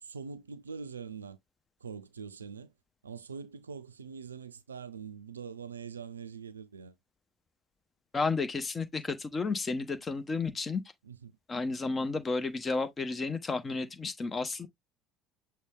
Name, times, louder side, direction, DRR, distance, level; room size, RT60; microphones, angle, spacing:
voice 1, 0.0-1.4 1.8-2.7 3.0-7.0 11.0-11.3, right 6 dB, 80° right, 0.4 m, -43 dB
voice 2, 8.1-10.8 11.5-14.7, left 4 dB, 25° left, 1.0 m, -32 dB
6.5 x 2.2 x 3.6 m
figure-of-eight pair, 60°, 0 cm